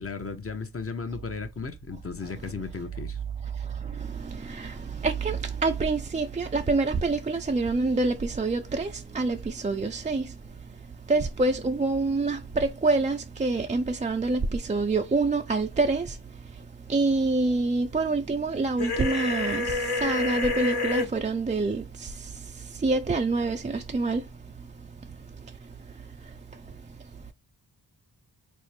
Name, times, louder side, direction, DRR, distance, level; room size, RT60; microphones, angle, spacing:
voice 1, 0.0-3.2, left 5 dB, 35° left, 0.7 m, -35 dB
voice 2, 3.5-10.4 11.1-16.2 16.5-24.3 26.2-26.6, right 3 dB, 20° right, 0.3 m, -27 dB
sound 1, 18.8-21.1, left 3 dB, 75° left, 1.2 m, -28 dB
4.2 x 2.0 x 3.2 m
cardioid pair, 65°, 40 cm